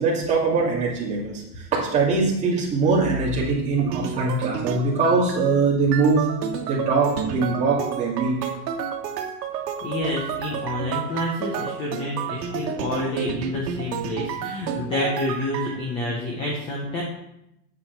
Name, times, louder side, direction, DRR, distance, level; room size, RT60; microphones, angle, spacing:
voice 1, 0.0-6.3 6.7-8.3, right 4 dB, 15° right, -6 dB, 2.2 m, -22 dB
sound 1, 3.8-5.5 5.9-15.8, right 7 dB, 85° right, 1.4 m, -31 dB
voice 2, 9.8-17.0, left 1 dB, 10° left, -2 dB, 0.6 m, -28 dB
8.8 x 7.7 x 4.5 m, 0.84 s
supercardioid pair, 175°, 48 cm